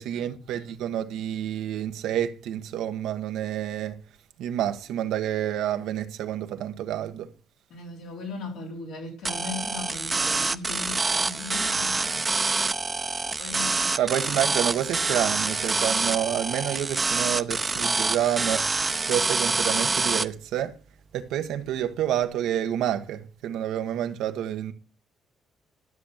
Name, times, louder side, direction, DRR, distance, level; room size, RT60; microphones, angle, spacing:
voice 1, 0.0-4.0 4.4-7.3 14.0-20.8 21.1-24.7, right 11 dB, 90° right, 1.2 m, -29 dB
voice 2, 7.7-12.5 13.1-14.4, left 3 dB, 85° left, 4.5 m, -38 dB
sound 1, 9.2-20.2, right 3 dB, 25° right, 0.8 m, -26 dB
13.0 x 7.2 x 6.5 m
cardioid pair, 90°, 0 cm